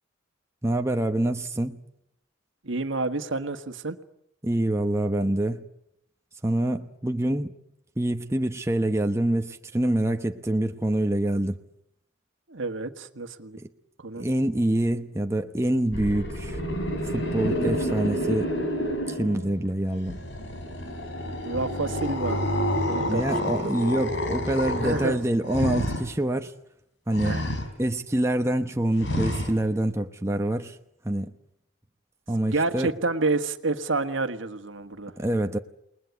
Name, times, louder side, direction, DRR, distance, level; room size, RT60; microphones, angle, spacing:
voice 1, 0.6-1.8 4.4-5.6 6.4-7.5 8.0-11.6 13.6-13.7 14.2-16.6 17.1-18.5 19.1-20.2 23.1-26.5 27.1-27.4 27.8-30.8 31.0-31.3 32.3-32.9 35.2-35.6, right 1 dB, 15° right, 1.0 m, -26 dB
voice 2, 2.6-4.0 12.5-13.6 14.0-14.3 21.4-22.5 22.9-23.6 24.7-25.2 27.2-27.5 32.5-35.1, right 3 dB, 75° right, 1.6 m, -29 dB
sound 1, 15.9-19.7 20.0-26.0 27.1-27.7 29.0-29.5, equal, 65° left, 4.5 m, -29 dB
29.0 x 20.5 x 8.4 m
head